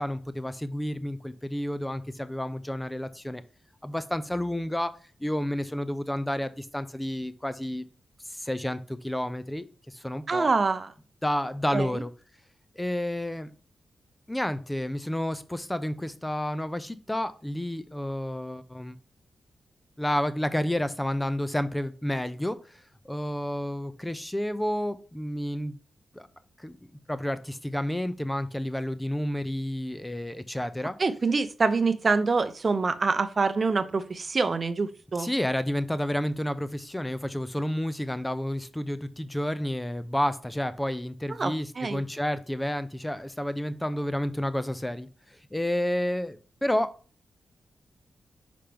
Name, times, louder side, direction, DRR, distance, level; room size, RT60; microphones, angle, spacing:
voice 1, 0.0-3.4 3.8-4.9 5.2-7.8 8.3-10.5 11.2-12.1 12.8-13.5 14.3-19.0 20.0-25.8 26.1-26.3 26.6-26.8 27.1-31.0 35.2-46.9, left 1 dB, 10° left, 12 dB, 0.5 m, -30 dB
voice 2, 10.3-10.9 11.7-12.0 31.0-35.3 41.3-42.0, right 4 dB, 45° right, 12 dB, 0.6 m, -26 dB
5.7 x 5.1 x 3.4 m, 0.38 s
cardioid pair, 90°, 0 cm